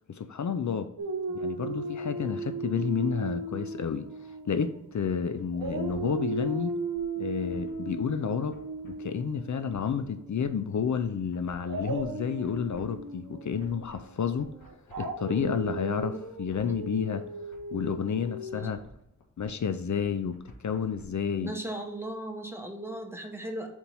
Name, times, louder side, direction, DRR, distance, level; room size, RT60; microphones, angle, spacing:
voice 1, 0.1-0.9 1.3-4.1 4.5-6.7 7.2-8.6 8.8-14.5 15.0-17.2 17.7-18.8 19.4-20.4 20.6-21.5, left 7 dB, 65° left, 10 dB, 0.5 m, -30 dB
Dog, 1.0-5.1 5.5-10.5 11.6-18.6, right 3 dB, 85° right, 0.9 m, -37 dB
sound 1, 4.9-21.0, left 1 dB, 85° left, 1.3 m, -55 dB
voice 2, 21.4-23.7, right 1 dB, 5° right, 3 dB, 0.9 m, -37 dB
4.4 x 4.3 x 5.4 m, 0.78 s
wide cardioid pair, 90°, 32 cm